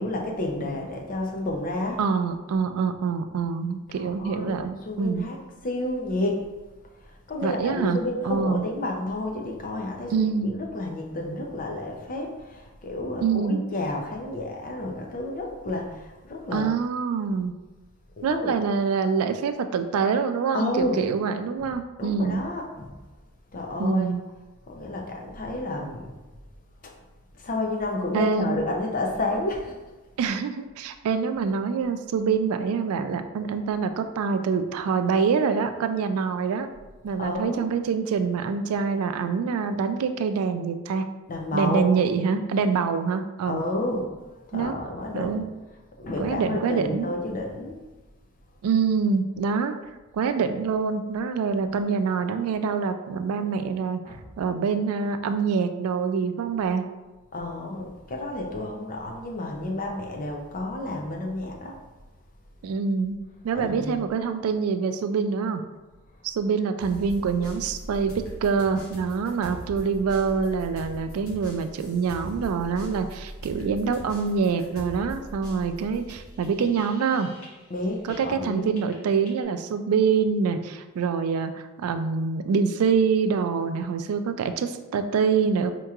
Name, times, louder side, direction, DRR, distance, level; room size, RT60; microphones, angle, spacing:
voice 1, 0.0-2.0 3.9-6.5 7.3-16.7 18.2-18.6 20.5-21.1 21.6-21.7 22.0-23.0 23.5-24.1 24.7-26.1 26.8-26.9 27.3-29.8 37.2-37.7 41.3-41.9 43.4-44.1 44.5-45.5 46.0-47.8 54.0-54.2 57.3-61.8 63.5-64.0 77.7-78.7, left 2 dB, 40° left, 1 dB, 0.5 m, -30 dB
voice 2, 2.0-5.3 7.4-8.7 10.1-10.5 13.2-13.6 16.5-17.5 18.2-22.4 23.8-24.2 28.1-28.6 30.2-36.7 37.0-41.0 41.5-43.6 44.5-44.8 45.1-45.5 46.2-47.1 48.6-49.7 50.1-54.0 54.4-56.8 62.6-63.2 63.4-65.6 66.2-77.3 78.0-85.7, right 5 dB, 80° right, 8 dB, 0.3 m, -25 dB
sound 1, 66.8-78.5 78.8-79.4, equal, 75° left, 0.9 m, -41 dB
4.4 x 2.9 x 2.4 m, 1.1 s
head